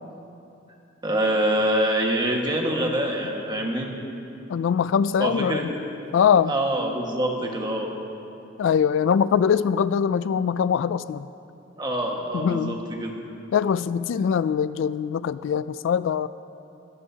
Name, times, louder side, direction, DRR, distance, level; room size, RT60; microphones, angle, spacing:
voice 1, 1.0-3.9 5.2-5.8 6.5-7.9 11.8-13.2, right 1 dB, 20° right, 0 dB, 1.6 m, -25 dB
voice 2, 4.5-5.7 6.1-6.5 8.6-11.3 12.3-12.8 13.5-16.3, left 7 dB, 70° left, 15 dB, 0.3 m, -22 dB
23.5 x 14.5 x 2.8 m, 2.7 s
head